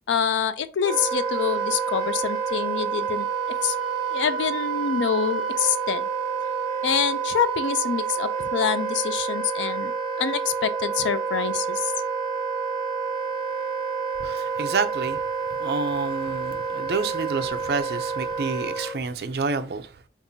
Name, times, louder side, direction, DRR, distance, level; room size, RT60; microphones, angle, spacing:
voice 1, 0.1-3.3 3.6-3.8 4.1-6.1 6.8-9.9 10.2-11.9, left 7 dB, 85° left, 0.4 m, -26 dB
Wind instrument woodwind instrument, 0.8-19.0, right 6 dB, 30° right, 1.0 m, -28 dB
voice 2, 14.2-15.2 15.6-19.9, right 4 dB, 60° right, 0.4 m, -28 dB
5.3 x 2.4 x 2.6 m
head